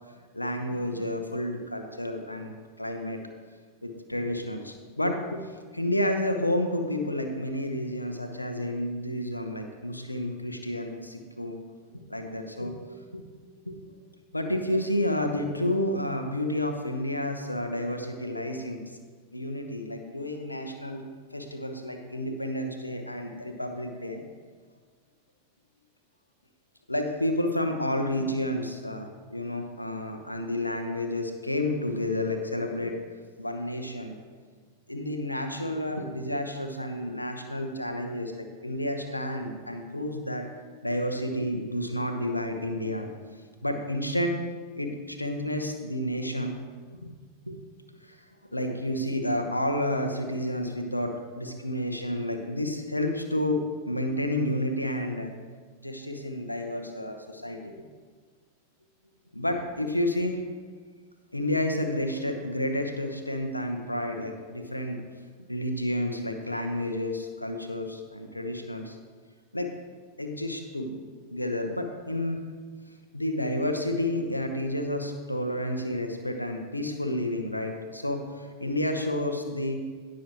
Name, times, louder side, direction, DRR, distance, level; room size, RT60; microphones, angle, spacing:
voice 1, 0.1-2.5 2.8-3.2 3.8-11.6 12.1-13.2 13.7-13.9 14.3-18.8 19.3-21.0 21.3-24.2 26.9-33.0 33.4-34.2 34.9-40.4 40.8-43.1 43.6-44.3 44.8-46.6 47.0-47.1 47.4-47.6 48.0-48.2 48.5-53.6 53.9-55.3 55.8-57.7 59.3-60.4 61.3-65.0 65.5-69.0 69.5-69.7 70.2-71.0 71.3-72.4 73.1-79.8, left 1 dB, 85° left, 5 dB, 1.0 m, -30 dB
17.5 x 6.3 x 3.0 m, 1.5 s
figure-of-eight pair, 90°, 0 cm